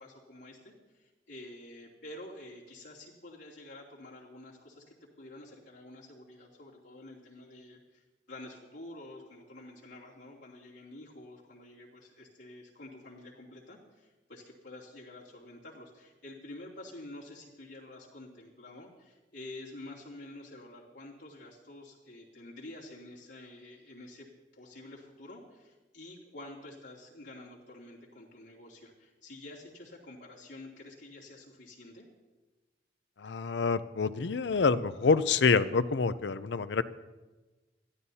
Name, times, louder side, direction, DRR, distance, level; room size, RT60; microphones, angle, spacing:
voice 1, 0.0-24.3 24.5-32.1, left 1 dB, 90° left, -5 dB, 2.8 m, -49 dB
voice 2, 33.2-36.8, left 4 dB, 75° left, 14 dB, 0.5 m, -27 dB
23.0 x 14.0 x 2.8 m, 1.2 s
head